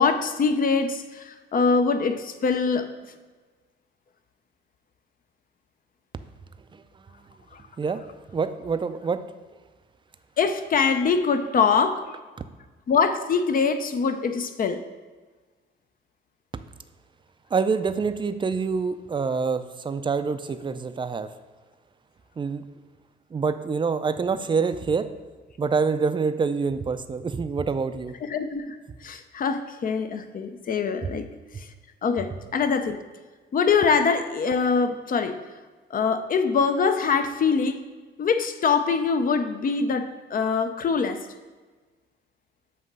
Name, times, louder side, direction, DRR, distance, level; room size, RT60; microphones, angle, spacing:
voice 1, 0.0-2.9 10.4-12.0 12.9-14.8 28.3-28.8 29.0-31.2 32.0-33.0 33.5-35.4 35.9-37.8 38.2-41.2, left 5 dB, 45° left, 9 dB, 0.6 m, -23 dB
voice 2, 8.3-9.2 17.5-21.3 22.4-22.7 23.3-25.1 25.6-28.1 31.0-31.1, right 5 dB, 25° right, 11 dB, 0.4 m, -26 dB
7.6 x 3.0 x 5.3 m, 1.3 s
cardioid pair, 90°, 20 cm